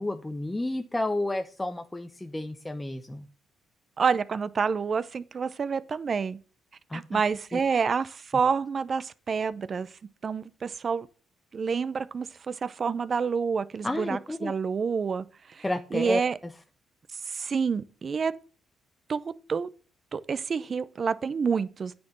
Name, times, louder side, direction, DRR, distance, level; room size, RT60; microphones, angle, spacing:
voice 1, 0.0-3.2 6.9-7.2 7.5-7.6 13.8-14.5 15.6-16.2, left 1 dB, 10° left, 0.7 m, -31 dB
voice 2, 4.0-6.4 6.9-9.9 10.2-11.1 11.5-15.7 15.9-16.4 17.3-18.3 19.1-19.7 20.1-22.0, right 5 dB, 45° right, 0.6 m, -28 dB
9.4 x 4.4 x 7.1 m
cardioid pair, 90°, 0 cm